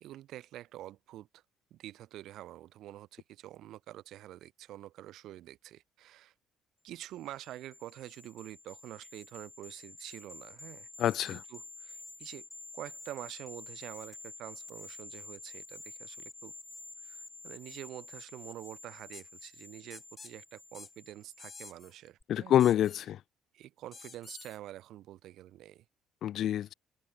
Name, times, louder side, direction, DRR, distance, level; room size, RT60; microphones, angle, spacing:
voice 1, 0.0-1.4 1.7-6.3 6.8-10.9 11.3-12.5 12.7-16.5 17.0-22.5 23.5-25.8, right 14 dB, 70° right, 1.0 m, -47 dB
sound 1, 7.1-21.7 22.1-22.2, left 3 dB, 20° left, 3.9 m, -49 dB
voice 2, 11.0-11.4 22.3-23.2 26.2-26.7, left 11 dB, 65° left, 0.4 m, -27 dB
sound 2, 19.1-19.3 19.9-20.3 20.7-20.9 21.4-21.9 22.6-23.1 23.9-24.6, left 5 dB, 35° left, 3.2 m, -49 dB
supercardioid pair, 70°, 0 cm